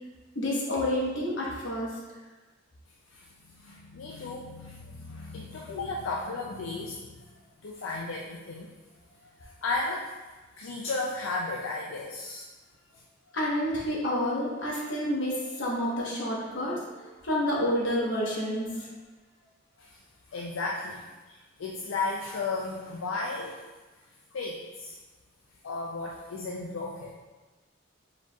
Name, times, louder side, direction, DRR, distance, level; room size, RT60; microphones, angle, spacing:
voice 1, 0.3-1.9 13.3-18.9, left 1 dB, 65° left, -4 dB, 1.1 m, -29 dB
voice 2, 3.1-7.2 7.6-8.7 9.4-10.1 10.6-12.4 12.9-13.0 19.8-20.0 20.3-23.6 24.3-25.0 25.6-27.1, left 3 dB, 85° left, -2 dB, 0.4 m, -34 dB
4.7 x 4.2 x 2.3 m, 1.2 s
head